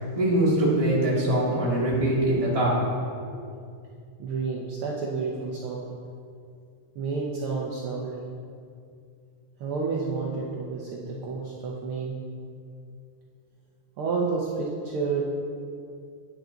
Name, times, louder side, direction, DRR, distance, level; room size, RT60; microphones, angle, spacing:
voice 1, 0.1-2.9, right 1 dB, 15° right, -6 dB, 1.5 m, -23 dB
voice 2, 4.2-5.9 6.9-8.2 9.6-12.2 14.0-15.2, right 4 dB, 85° right, -3 dB, 1.2 m, -30 dB
9.3 x 9.2 x 3.9 m, 2.4 s
omnidirectional pair, 3.6 m